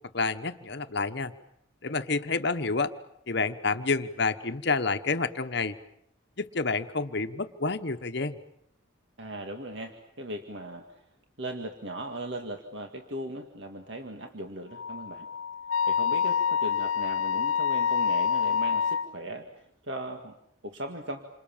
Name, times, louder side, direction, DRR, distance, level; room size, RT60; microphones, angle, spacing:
voice 1, 0.1-1.3 1.8-2.9 3.3-5.7 6.4-8.4, left 4 dB, 55° left, 9 dB, 1.1 m, -29 dB
voice 2, 9.2-11.0 11.4-15.3 15.9-20.4 20.6-21.3, right 1 dB, 60° right, 4 dB, 2.0 m, -38 dB
Wind instrument woodwind instrument, 14.7-19.1, left 7 dB, 80° left, 1.2 m, -27 dB
28.5 x 26.0 x 7.3 m, 0.73 s
head